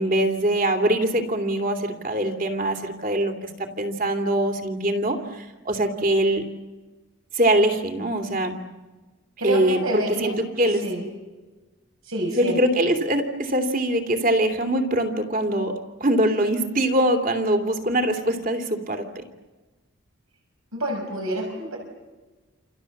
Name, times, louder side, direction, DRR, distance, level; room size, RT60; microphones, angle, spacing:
voice 1, 0.0-6.4 7.3-8.6 9.4-10.8 12.4-15.7 16.0-19.2, right 1 dB, 40° right, 7 dB, 2.8 m, -23 dB
voice 2, 9.4-10.4 10.8-11.0 12.0-12.6 20.7-21.8, right 1 dB, 75° right, 1 dB, 5.9 m, -28 dB
29.5 x 28.0 x 7.2 m, 1.2 s
head